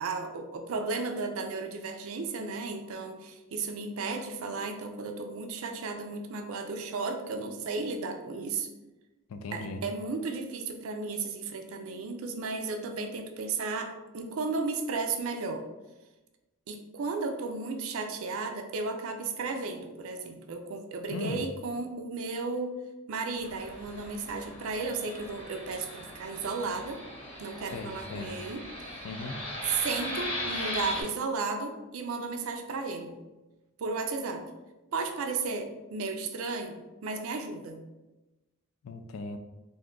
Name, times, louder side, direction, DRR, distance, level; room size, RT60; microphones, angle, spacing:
voice 1, 0.0-8.7 9.5-15.7 16.7-22.7 23.1-27.0 27.4-28.7 29.6-33.1 33.8-34.4 34.9-37.8, right 4 dB, 70° right, 5 dB, 0.4 m, -34 dB
voice 2, 9.3-9.8 21.1-21.4 27.7-28.3 29.0-29.4 38.8-39.4, left 3 dB, 70° left, 7 dB, 0.3 m, -37 dB
Fixed-wing aircraft airplane, 23.3-31.0, left 1 dB, 25° left, 0.6 m, -39 dB
2.6 x 2.3 x 3.6 m, 1.1 s
head